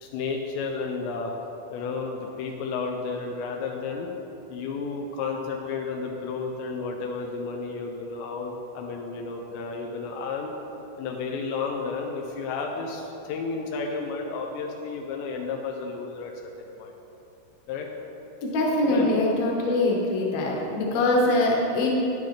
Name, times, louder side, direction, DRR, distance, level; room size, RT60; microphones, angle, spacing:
voice 1, 0.0-1.3 1.7-4.1 4.5-10.5 11.0-16.3 16.6-16.9 17.7-17.9 18.8-19.2 21.3-21.4, left 4 dB, 85° left, 1 dB, 3.0 m, -32 dB
voice 2, 18.4-22.0, left 2 dB, 65° left, -3 dB, 3.0 m, -23 dB
12.5 x 10.0 x 3.3 m, 2.8 s
omnidirectional pair, 5.0 m